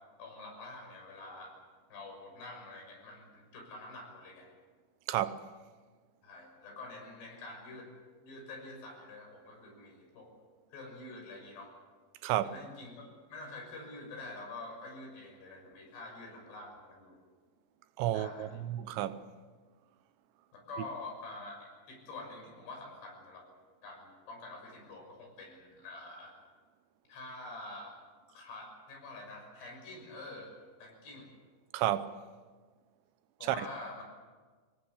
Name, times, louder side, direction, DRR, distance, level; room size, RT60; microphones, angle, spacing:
voice 1, 0.2-1.5 1.9-4.5 6.2-7.9 8.2-10.3 10.7-11.7 12.4-17.2 18.1-18.6 20.5-23.5 23.8-26.3 27.1-28.0 28.3-30.5 30.8-31.3 33.4-34.0, left 2 dB, 70° left, 8.5 m, -47 dB
voice 2, 5.1-5.4 12.2-12.5 18.0-19.2 31.7-32.1 33.4-33.6, right 13 dB, 85° right, 3.3 m, -31 dB
25.0 x 19.5 x 8.3 m
omnidirectional pair, 5.1 m